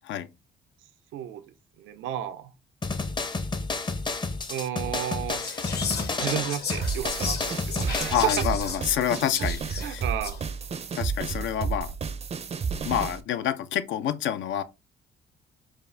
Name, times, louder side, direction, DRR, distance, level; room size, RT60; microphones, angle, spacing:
voice 1, 1.1-1.4 1.8-2.5 4.5-5.4 6.2-8.4 9.0-9.5 9.8-10.4, right 11 dB, 85° right, 0.5 m, -32 dB
sound 1, 2.8-8.5, left 3 dB, 25° left, 0.6 m, -31 dB
Whispering, 5.3-10.5, left 6 dB, 55° left, 1.0 m, -35 dB
sound 2, 6.8-13.2, right 5 dB, 35° right, 0.4 m, -31 dB
voice 2, 8.1-10.1 10.9-12.0 12.8-14.6, left 10 dB, 75° left, 0.5 m, -28 dB
4.6 x 2.4 x 3.2 m
cardioid pair, 90°, 20 cm